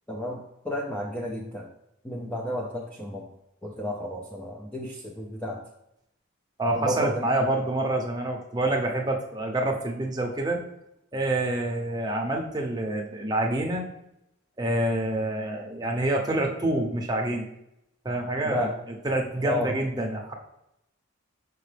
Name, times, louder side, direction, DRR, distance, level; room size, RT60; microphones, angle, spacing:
voice 1, 0.1-1.7 2.0-3.3 3.6-5.6 6.8-7.1 18.4-18.7 19.4-19.7, left 1 dB, 5° left, -1 dB, 0.5 m, -32 dB
voice 2, 6.6-10.6 11.1-13.8 14.6-17.5 18.0-18.7 19.0-20.3, right 1 dB, 20° right, 0 dB, 0.8 m, -27 dB
5.9 x 5.1 x 3.3 m, 0.84 s
head